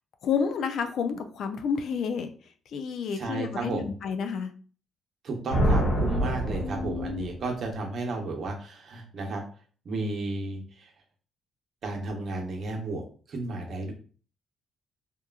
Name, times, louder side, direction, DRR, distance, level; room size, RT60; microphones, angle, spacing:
voice 1, 0.2-2.3 2.7-4.5 6.6-7.3, left 6 dB, 70° left, 8 dB, 0.3 m, -30 dB
voice 2, 3.1-4.0 5.2-9.4 9.8-10.9 11.8-13.0 13.3-13.9, right 2 dB, 55° right, 2 dB, 0.7 m, -33 dB
sound 1, 5.5-7.5, equal, 90° left, 1.4 m, -26 dB
2.9 x 2.3 x 2.3 m, 0.41 s
cardioid pair, 90°, 0 cm